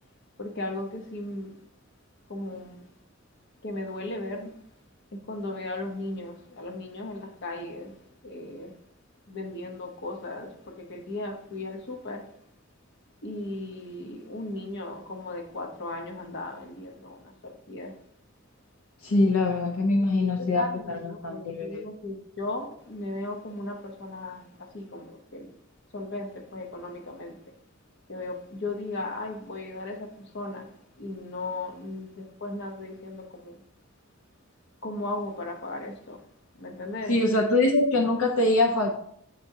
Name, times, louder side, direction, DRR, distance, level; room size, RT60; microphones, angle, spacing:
voice 1, 0.4-1.6 2.3-2.9 3.6-4.6 5.1-8.0 8.2-8.7 9.3-12.3 13.2-17.9 19.9-25.6 25.9-27.4 28.1-30.7 31.0-33.6 34.8-36.2 36.5-37.2, left 2 dB, 55° left, 0.9 m, -36 dB
voice 2, 19.0-21.8 37.1-39.0, left 2 dB, 80° left, 0.6 m, -24 dB
7.7 x 2.7 x 4.7 m
head